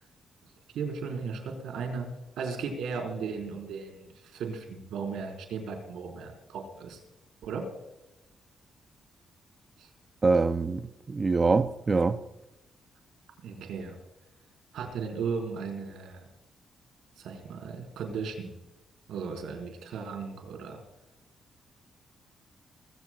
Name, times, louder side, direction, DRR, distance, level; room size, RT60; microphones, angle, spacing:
voice 1, 0.7-2.1 2.4-7.0 7.4-7.6 9.8-9.9 13.4-14.0 14.7-16.2 17.2-18.5 19.1-20.8, right 5 dB, 90° right, 4.5 m, -36 dB
voice 2, 10.2-10.8 11.1-12.2, right 4 dB, 25° right, 0.5 m, -24 dB
22.0 x 16.5 x 2.4 m
cardioid pair, 150°, 0 cm